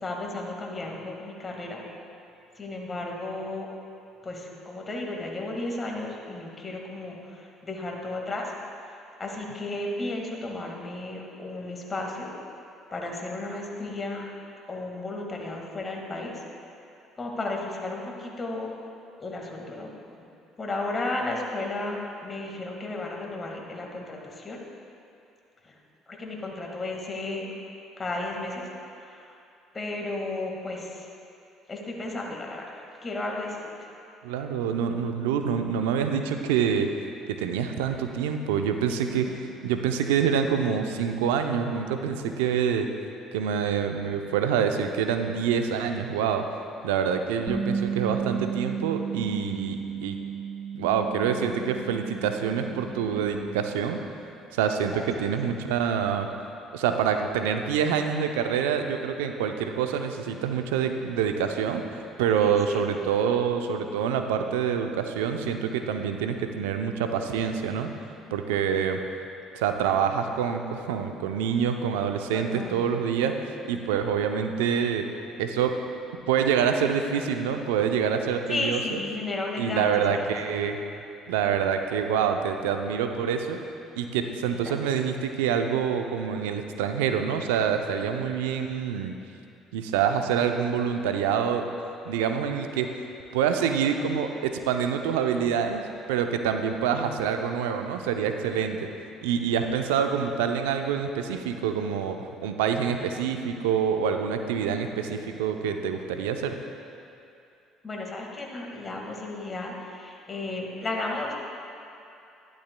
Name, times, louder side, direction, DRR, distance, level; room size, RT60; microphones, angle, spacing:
voice 1, 0.0-1.8 2.6-3.7 4.2-8.5 9.2-12.3 12.9-14.2 14.7-16.4 17.2-18.7 19.2-19.9 20.6-24.6 26.1-27.5 28.0-28.7 29.0-29.2 29.7-31.0 31.7-32.7 33.0-33.9 38.9-39.0 54.9-55.1 62.4-62.8 72.3-72.8 78.5-80.2 84.6-84.8 96.6-97.0 107.8-111.3, left 2 dB, 30° left, -1 dB, 1.7 m, -33 dB
voice 2, 34.2-36.9 37.3-39.3 39.6-42.9 43.3-46.4 46.8-50.2 50.7-54.0 54.5-56.3 56.7-67.9 68.3-69.0 69.5-75.1 75.4-75.8 76.3-79.0 79.6-80.8 81.3-83.6 84.0-89.2 89.7-91.7 92.1-92.9 93.3-95.8 96.1-98.9 99.2-106.6, right 7 dB, 80° right, 6 dB, 0.5 m, -26 dB
Bass guitar, 47.5-53.7, right 6 dB, 5° left, 1.1 m, -33 dB
11.5 x 11.5 x 2.2 m, 2.7 s
hypercardioid pair, 60°, 0 cm